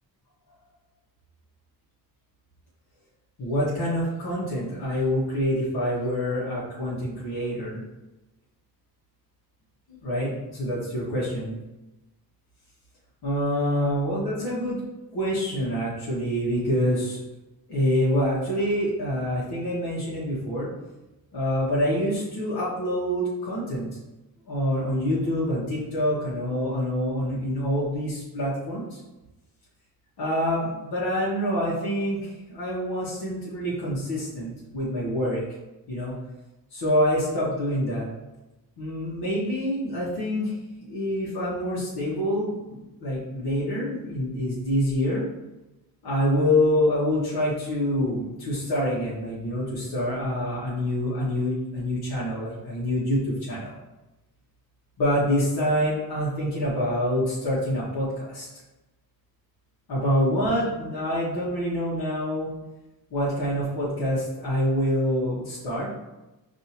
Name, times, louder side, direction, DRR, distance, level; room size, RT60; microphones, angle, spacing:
voice 1, 3.4-7.8 10.0-11.5 13.2-14.8 15.1-17.2 17.7-20.7 21.3-23.9 24.5-29.0 30.2-35.4 35.9-36.1 36.7-38.1 38.8-40.5 40.8-45.2 46.0-53.8 55.0-58.5 59.9-62.5 63.1-65.9, equal, 85° left, -7 dB, 1.1 m, -26 dB
5.1 x 2.7 x 2.8 m, 1.0 s
wide cardioid pair, 110°, 37 cm